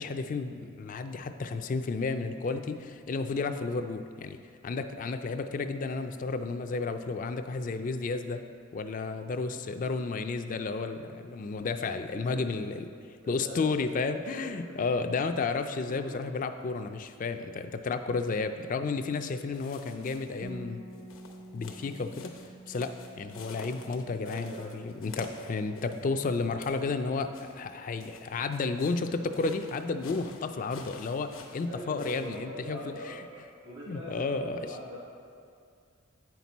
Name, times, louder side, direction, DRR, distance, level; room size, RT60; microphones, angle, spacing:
voice 1, 0.0-4.4 4.6-8.4 8.7-12.9 13.3-20.8 21.5-22.3 22.7-32.8 33.0-33.3 33.9-34.7, left 4 dB, 40° left, 8 dB, 0.3 m, -32 dB
voice 2, 12.1-12.6 13.4-13.7 14.4-14.8 15.9-16.2 24.2-24.8 31.7-35.0, right 1 dB, 65° right, -6 dB, 1.3 m, -43 dB
sound 1, 19.5-20.5 20.9-26.1 26.4-26.8 27.3-32.4, left 4 dB, 85° left, 0.8 m, -49 dB
Bass guitar, 20.4-25.1 25.4-26.7, right 2 dB, 40° right, 0.7 m, -49 dB
9.1 x 5.9 x 4.1 m, 2.4 s
head